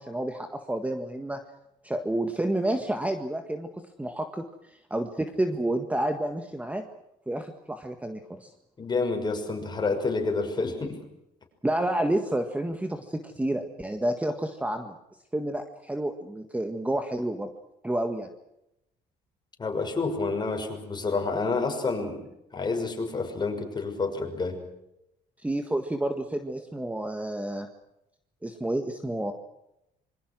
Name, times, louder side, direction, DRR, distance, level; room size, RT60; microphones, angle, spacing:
voice 1, 0.0-1.4 1.8-6.8 7.3-8.5 11.6-15.0 15.3-17.5 17.8-18.3 25.4-27.7 28.4-29.3, right 1 dB, 10° right, 7 dB, 1.7 m, -30 dB
voice 2, 8.8-11.0 19.6-22.2 22.5-24.6, left 3 dB, 25° left, 4 dB, 6.3 m, -29 dB
26.5 x 23.5 x 6.3 m, 0.85 s
cardioid pair, 110°, 17 cm